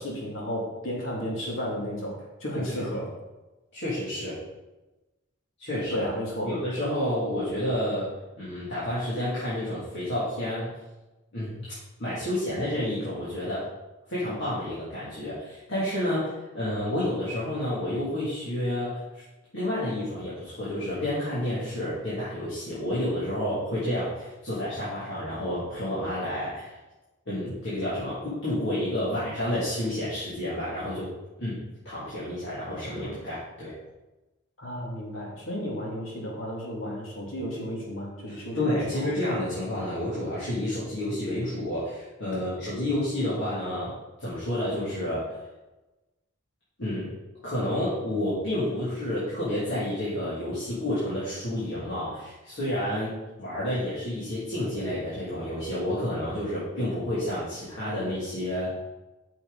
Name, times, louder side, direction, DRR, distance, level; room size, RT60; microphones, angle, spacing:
voice 1, 0.0-3.1 5.9-6.5 34.6-39.1 42.3-42.5, equal, 90° left, -2 dB, 2.6 m, -33 dB
voice 2, 3.7-4.4 5.6-6.0 6.4-8.1 8.4-10.7 11.3-11.7 12.0-13.7 14.1-19.2 19.5-26.8 27.3-31.1 31.4-33.7 38.3-45.4 46.8-47.1 47.4-58.7, left 1 dB, 65° left, -10 dB, 2.8 m, -30 dB
8.6 x 6.5 x 4.1 m, 1.1 s
head